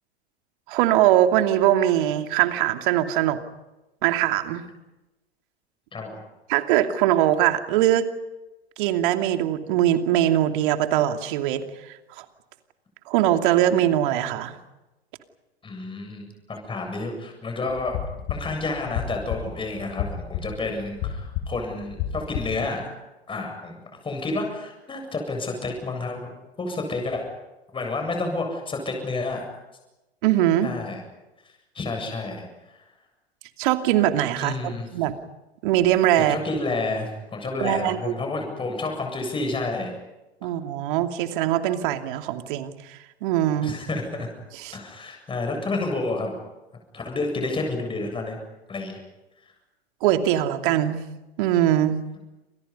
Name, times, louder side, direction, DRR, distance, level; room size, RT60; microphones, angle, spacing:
voice 1, 0.7-3.4 4.0-4.7 6.5-8.1 8.8-11.6 13.1-14.6 30.2-30.7 33.6-35.1 35.6-36.4 37.6-38.1 40.4-43.8 44.6-44.8 50.0-51.0 51.4-52.0, right 12 dB, 50° right, 6 dB, 2.7 m, -22 dB
voice 2, 15.6-18.0 18.3-22.9 23.3-23.8 24.0-26.3 26.6-27.2 27.7-29.4 30.6-31.0 31.7-32.5 32.7-32.8 34.4-34.9 36.2-39.9 43.6-44.3 44.7-46.4 46.9-48.4 48.7-49.0, left 3 dB, 15° left, 3 dB, 7.6 m, -30 dB
sound 1, 17.7-22.7, left 9 dB, 45° left, 3.7 m, -32 dB
29.0 x 27.5 x 5.6 m, 1.0 s
figure-of-eight pair, 100°, 32 cm